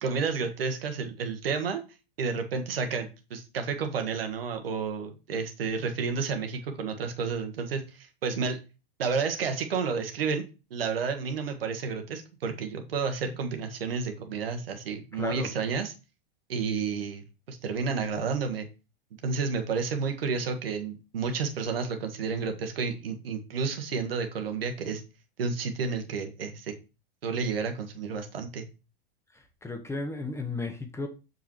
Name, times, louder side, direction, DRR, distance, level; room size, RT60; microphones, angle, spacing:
voice 1, 0.0-1.8 2.2-8.6 9.0-10.4 10.7-15.9 16.5-18.7 19.2-25.0 25.4-26.7 27.2-28.7, right 5 dB, 80° right, 6 dB, 1.4 m, -31 dB
voice 2, 15.1-15.5 29.3-31.1, left 3 dB, 10° left, 6 dB, 1.2 m, -34 dB
6.6 x 5.2 x 3.1 m, 0.30 s
hypercardioid pair, 105°, 29 cm